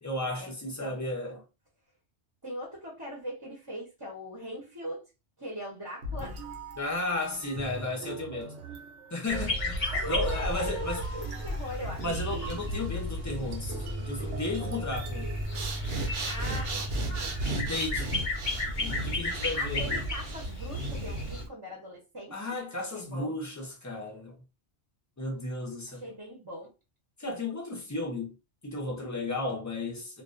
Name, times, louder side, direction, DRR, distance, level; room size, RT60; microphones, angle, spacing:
voice 1, 0.0-1.4 6.8-8.6 9.1-11.0 12.0-15.3 17.5-18.1 18.6-20.0 22.3-24.4 25.2-26.0 27.2-28.3 28.6-30.2, left 2 dB, 30° left, 0.3 m, -34 dB
voice 2, 2.4-5.0 5.4-6.5 9.9-12.1 16.3-17.4 19.5-22.4 22.9-23.4 25.9-26.7, equal, 25° right, 0.6 m, -40 dB
sound 1, 6.0-16.3, right 1 dB, 85° right, 0.9 m, -41 dB
sound 2, 9.3-21.4, left 1 dB, 45° left, 0.7 m, -34 dB
Breathing, 15.4-21.5, right 2 dB, 60° right, 0.8 m, -35 dB
2.3 x 2.2 x 2.4 m
omnidirectional pair, 1.2 m